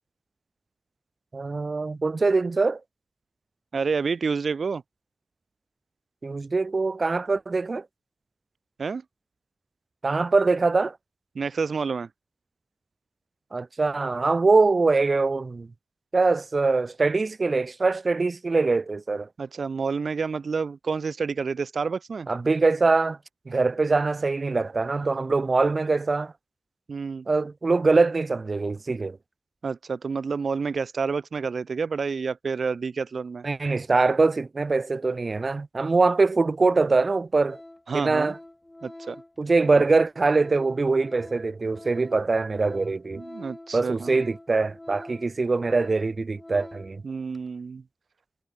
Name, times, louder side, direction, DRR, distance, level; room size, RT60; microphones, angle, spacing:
voice 1, 1.3-2.8 6.2-7.8 10.0-11.0 13.5-15.7 16.1-19.3 22.3-23.2 23.5-26.3 27.3-29.2 33.4-37.6 37.9-38.4 39.4-43.2 43.7-47.0, right 3 dB, 55° right, 0.7 m, -23 dB
voice 2, 3.7-4.8 8.8-9.0 11.3-12.1 19.4-22.3 26.9-27.3 29.6-33.4 37.9-38.3 38.8-39.2 43.2-44.1 47.0-47.8, right 5 dB, 85° right, 2.8 m, -29 dB
Organ, 37.0-37.2 37.4-47.0 47.3-47.5, left 1 dB, 20° left, 5.0 m, -46 dB
wide cardioid pair, 60°, 0 cm